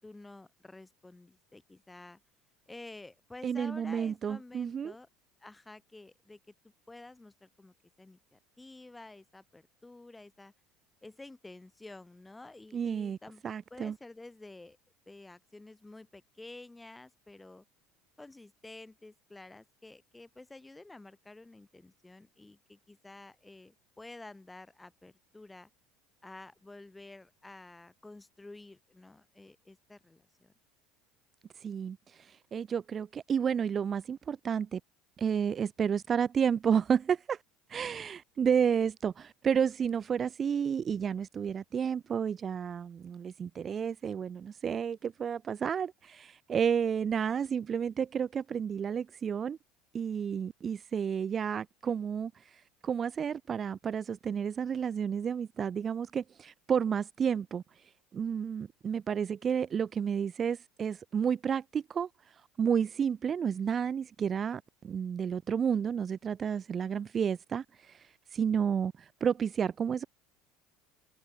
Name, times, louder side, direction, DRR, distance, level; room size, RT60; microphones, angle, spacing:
voice 1, 0.0-2.2 2.7-5.1 5.4-6.4 6.9-10.5 11.0-13.4 13.7-14.8 15.1-17.6 18.2-25.7 26.2-30.5, left 2 dB, 10° left, 4.9 m, -50 dB
voice 2, 3.4-4.9 12.7-13.2 13.4-13.9 31.6-34.8 35.2-37.4 37.7-49.6 49.9-70.0, right 7 dB, 35° right, 0.4 m, -31 dB
supercardioid pair, 100°, 0 cm